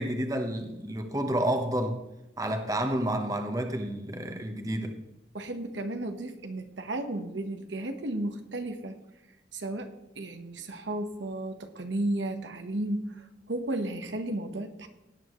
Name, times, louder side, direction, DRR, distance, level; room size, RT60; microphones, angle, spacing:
voice 1, 0.0-2.0 2.4-5.0, right 1 dB, 20° right, 5 dB, 1.0 m, -30 dB
voice 2, 5.3-9.0 9.5-14.9, right 1 dB, 85° right, 6 dB, 1.2 m, -34 dB
17.5 x 9.0 x 3.1 m, 0.95 s
head